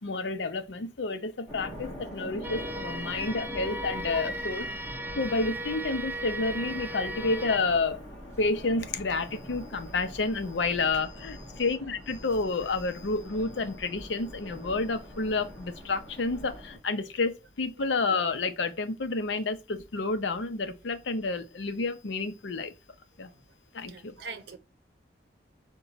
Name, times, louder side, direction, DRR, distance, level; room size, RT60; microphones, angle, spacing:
voice 1, 0.0-4.7 5.2-8.0 8.4-22.7 23.2-23.3 23.7-24.1, left 3 dB, 80° left, 0.6 m, -30 dB
sound 1, 1.5-16.8, equal, 10° left, 1.6 m, -44 dB
sound 2, 2.4-7.6, right 1 dB, 10° right, 0.3 m, -36 dB
voice 2, 23.9-24.6, right 4 dB, 65° right, 0.7 m, -43 dB
5.5 x 2.3 x 3.9 m
head